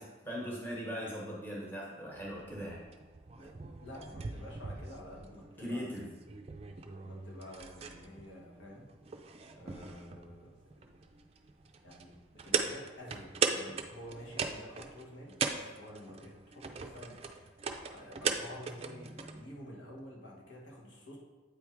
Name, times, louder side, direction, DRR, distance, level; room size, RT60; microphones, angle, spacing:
voice 1, 0.0-2.8 5.6-6.1, equal, 10° left, -5 dB, 1.1 m, -39 dB
sound 1, 2.1-19.4, right 5 dB, 30° right, 0.4 m, -40 dB
voice 2, 3.8-5.8 6.7-8.9 9.5-10.6 10.8-11.0 11.8-17.5 17.8-21.2, left 1 dB, 80° left, -3 dB, 1.4 m, -50 dB
8.3 x 3.5 x 4.6 m, 1.3 s
head